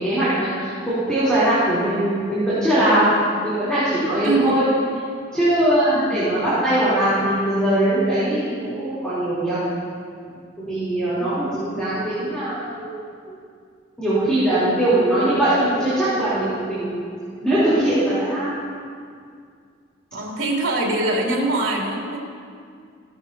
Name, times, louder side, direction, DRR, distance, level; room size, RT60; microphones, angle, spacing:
voice 1, 0.0-3.1 3.4-4.7 5.3-9.6 10.6-12.9 13.2-13.4 14.0-17.1 17.4-18.7, right 1 dB, 5° left, -13 dB, 3.6 m, -21 dB
voice 2, 4.2-4.6 5.9-6.2 11.2-11.3 20.1-22.2, right 2 dB, 75° right, -4 dB, 3.1 m, -23 dB
16.5 x 12.0 x 2.9 m, 2.2 s
head